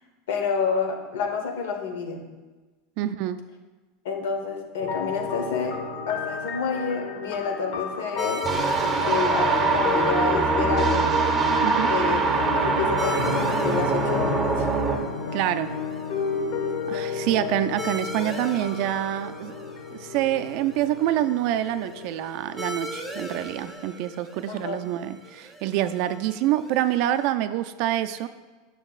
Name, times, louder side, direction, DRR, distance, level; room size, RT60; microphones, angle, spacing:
voice 1, 0.3-2.2 4.0-5.8 6.1-8.4 9.0-11.1 11.9-14.7 24.5-24.8, left 5 dB, 85° left, 4 dB, 1.0 m, -29 dB
voice 2, 3.0-3.4 11.6-11.9 15.3-15.7 16.9-19.5 19.9-28.3, right 13 dB, 50° right, 11 dB, 0.3 m, -26 dB
sound 1, 4.8-23.7, left 5 dB, 60° left, 0.8 m, -33 dB
sound 2, 8.2-27.3, equal, 5° left, 1.1 m, -40 dB
sound 3, 8.4-15.0, right 4 dB, 20° right, 0.7 m, -23 dB
8.8 x 6.2 x 2.4 m, 1.3 s
supercardioid pair, 160°, 0 cm